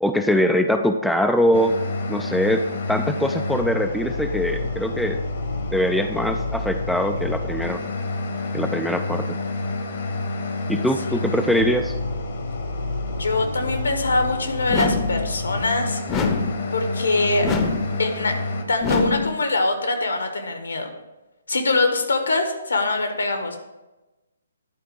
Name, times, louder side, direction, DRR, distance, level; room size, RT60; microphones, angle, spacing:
voice 1, 0.0-1.7 2.1-5.2 5.7-7.8 8.5-9.4 10.7-12.0, equal, ahead, 5 dB, 0.4 m, -22 dB
sound 1, 1.5-18.6, left 2 dB, 55° left, 1.2 m, -28 dB
voice 2, 11.1-11.4 13.2-16.0 16.7-17.5 18.0-18.3 18.7-20.9 21.5-23.6, left 3 dB, 75° left, 5 dB, 1.4 m, -23 dB
sound 2, 14.7-15.2 16.1-16.6 17.4-17.9 18.8-19.3, left 4 dB, 20° left, 0.8 m, -24 dB
11.0 x 4.2 x 4.8 m, 1.1 s
figure-of-eight pair, 135°, 0 cm